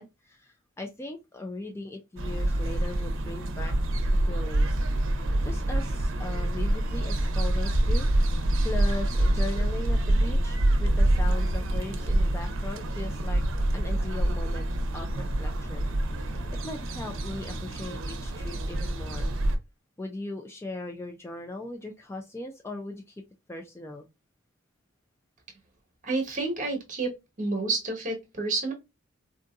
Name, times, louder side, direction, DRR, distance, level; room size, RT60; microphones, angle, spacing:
voice 1, 0.0-3.7 4.3-4.8 5.4-8.1 8.6-13.4 13.7-14.7 14.9-15.9 16.2-19.3 20.0-23.2 23.5-24.1, left 2 dB, 15° left, 0.3 m, -39 dB
sound 1, 2.2-19.6, right 1 dB, 75° right, 0.6 m, -26 dB
voice 2, 26.0-27.1 27.4-28.7, right 3 dB, 40° right, 1.0 m, -29 dB
3.6 x 2.6 x 2.3 m
head